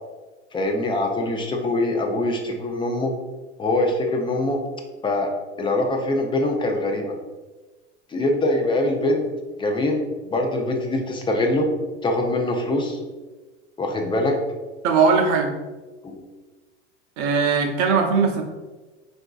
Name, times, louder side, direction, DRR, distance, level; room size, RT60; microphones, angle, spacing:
voice 1, 0.5-3.1 3.6-4.6 5.0-5.3 5.6-7.2 8.1-9.3 9.6-10.0 10.3-11.7 12.0-13.0 13.8-14.4 16.0-16.2, left 2 dB, 15° left, 2 dB, 0.4 m, -23 dB
voice 2, 14.8-15.5 17.2-18.4, right 5 dB, 55° right, 2 dB, 0.7 m, -19 dB
4.4 x 2.6 x 2.3 m, 1.2 s
hypercardioid pair, 95°, 34 cm